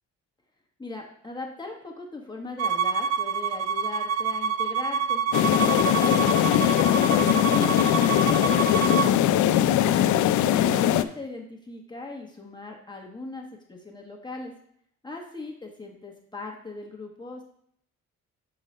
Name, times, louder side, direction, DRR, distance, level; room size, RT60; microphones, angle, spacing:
voice 1, 0.8-7.0 10.3-14.5 15.0-17.4, left 3 dB, 15° left, 0 dB, 1.3 m, -39 dB
Bowed string instrument, 2.6-9.1, right 6 dB, 60° right, 0.5 m, -27 dB
sound 1, 5.3-11.0, left 11 dB, 75° left, 0.5 m, -21 dB
7.3 x 3.9 x 5.4 m, 0.67 s
cardioid pair, 90°, 30 cm